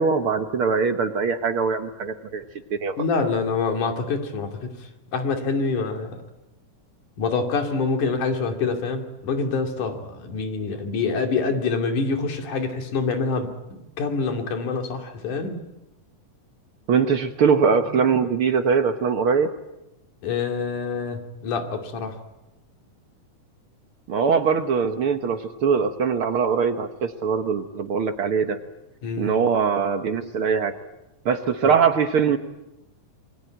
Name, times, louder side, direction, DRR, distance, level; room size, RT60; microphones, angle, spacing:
voice 1, 0.0-2.4 2.7-3.0 16.9-19.5 24.1-28.6 29.2-30.7 31.2-32.4, right 6 dB, 60° right, 7 dB, 1.5 m, -22 dB
voice 2, 3.0-4.7 5.1-6.2 7.2-15.6 20.2-22.2 29.0-29.3 31.6-31.7, left 4 dB, 70° left, 4 dB, 4.0 m, -26 dB
27.5 x 23.0 x 9.1 m, 0.95 s
omnidirectional pair, 3.7 m